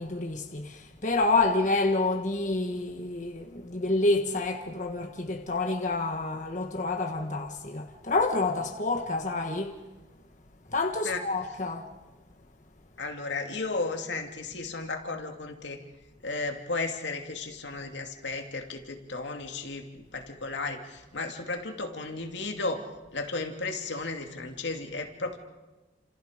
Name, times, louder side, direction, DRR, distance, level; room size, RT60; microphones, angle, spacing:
voice 1, 0.0-9.8 10.7-11.9, left 2 dB, 40° left, 1.4 m, -28 dB
voice 2, 13.0-15.8 16.2-22.9 23.1-25.4, left 3 dB, 75° left, 2.5 m, -34 dB
29.5 x 27.0 x 5.1 m
head